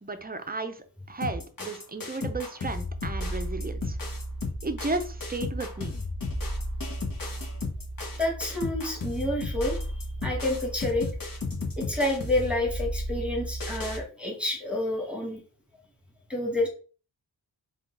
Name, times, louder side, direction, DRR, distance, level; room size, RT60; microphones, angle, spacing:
voice 1, 0.0-4.0 4.6-6.0, right 3 dB, 20° right, 8 dB, 0.7 m, -34 dB
sound 1, 1.2-14.0, left 1 dB, 50° left, 1.2 m, -33 dB
voice 2, 8.2-11.1 11.8-15.4 16.3-16.7, left 1 dB, 5° right, -2 dB, 1.3 m, -29 dB
3.8 x 2.5 x 3.8 m, 0.38 s
cardioid pair, 45°, 44 cm